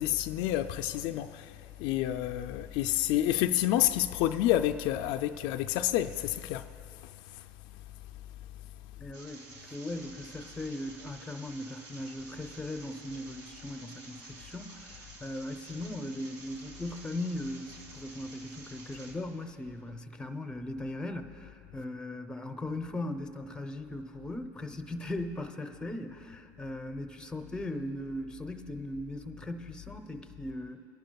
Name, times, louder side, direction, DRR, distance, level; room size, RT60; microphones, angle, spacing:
voice 1, 0.0-6.7 7.0-7.4, left 13 dB, 65° left, 0.4 m, -29 dB
voice 2, 9.0-30.9, left 1 dB, 10° left, 0.7 m, -39 dB
sound 1, 9.1-19.1, right 2 dB, 65° right, 2.6 m, -50 dB
22.0 x 11.5 x 2.3 m
supercardioid pair, 115°, 9 cm